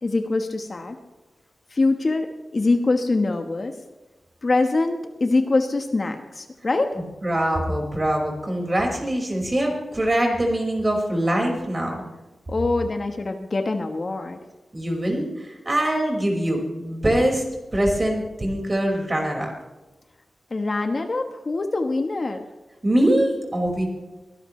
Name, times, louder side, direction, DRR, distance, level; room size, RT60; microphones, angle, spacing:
voice 1, 0.0-1.0 1.7-3.8 4.4-7.0 12.5-14.4 20.5-22.4, left 3 dB, 40° left, 5 dB, 1.3 m, -24 dB
voice 2, 7.0-12.0 14.7-17.4 17.7-19.5 22.8-23.8, right 1 dB, 25° right, 0 dB, 5.3 m, -23 dB
23.5 x 18.0 x 3.3 m, 1.1 s
wide cardioid pair, 110°, 0 cm